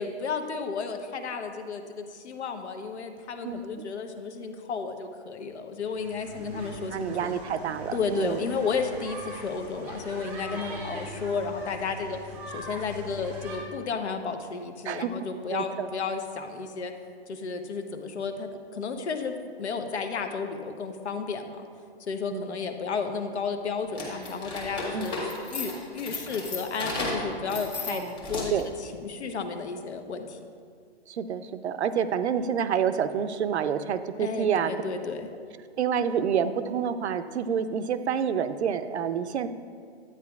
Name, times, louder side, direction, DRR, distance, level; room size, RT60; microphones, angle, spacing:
voice 1, 0.0-7.3 7.9-12.2 12.5-16.9 17.3-21.7 22.1-25.1 25.5-28.0 28.3-28.5 28.8-30.4 34.2-35.3, left 5 dB, 85° left, 6 dB, 0.9 m, -32 dB
voice 2, 3.4-3.9 6.9-8.4 14.8-15.9 22.3-22.6 24.9-25.1 27.9-28.2 28.5-28.7 31.1-34.7 35.8-39.5, right 7 dB, 85° right, 11 dB, 0.6 m, -28 dB
sound 1, 5.9-13.6, equal, 5° right, 0.5 m, -41 dB
sound 2, 23.9-28.7, left 2 dB, 15° left, 1.1 m, -34 dB
9.7 x 9.0 x 2.3 m, 2.2 s
hypercardioid pair, 160°, 33 cm